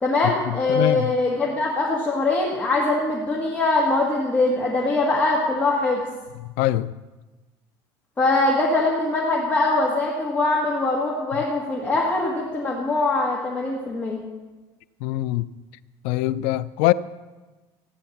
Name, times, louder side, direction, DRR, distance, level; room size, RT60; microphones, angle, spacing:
voice 1, 0.0-6.0 8.2-14.2, left 2 dB, 15° left, 1.9 m, -22 dB
voice 2, 0.7-1.1 6.6-6.9 15.0-15.5 16.0-16.9, left 16 dB, 75° left, 0.5 m, -22 dB
15.0 x 10.0 x 7.2 m
cardioid pair, 175°, 11 cm